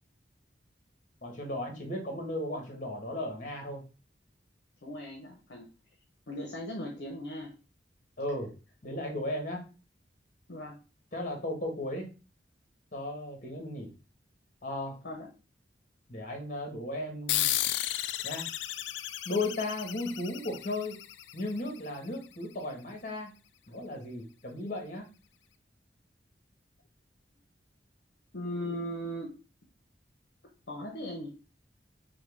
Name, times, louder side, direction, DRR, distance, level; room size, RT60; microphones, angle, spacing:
voice 1, 1.2-3.8 8.2-8.5 8.8-9.6 11.1-12.1 12.9-13.9 14.6-14.9 16.1-17.5 18.2-18.4 19.2-20.9 21.3-23.3 23.7-25.1, left 1 dB, 45° left, 2 dB, 1.3 m, -35 dB
voice 2, 4.8-5.7 6.3-7.5 10.5-10.8 15.0-15.3 28.3-29.4 30.7-31.3, equal, 65° left, 0 dB, 0.9 m, -38 dB
sound 1, 17.3-22.2, left 13 dB, 85° left, 0.3 m, -34 dB
5.6 x 2.3 x 3.4 m, 0.32 s
head